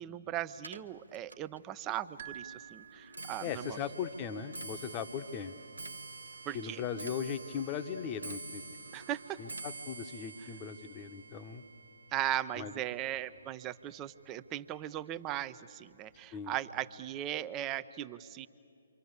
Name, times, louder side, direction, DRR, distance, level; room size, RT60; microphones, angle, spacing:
voice 1, 0.0-3.8 6.5-6.8 8.9-9.4 12.1-18.5, right 13 dB, 20° right, 13 dB, 0.7 m, -38 dB
Clock, 0.6-13.9 14.2-14.7 15.5-15.6 15.9-16.3 16.6-16.7, right 3 dB, 80° right, 1.1 m, -48 dB
sound 1, 2.2-3.8, right 10 dB, 45° right, 1.5 m, -49 dB
voice 2, 3.4-5.5 6.5-8.6 9.4-11.6 12.6-12.8 16.3-16.6, left 7 dB, 25° left, 9 dB, 1.1 m, -38 dB
28.5 x 25.0 x 8.2 m, 2.6 s
figure-of-eight pair, 135°, 0 cm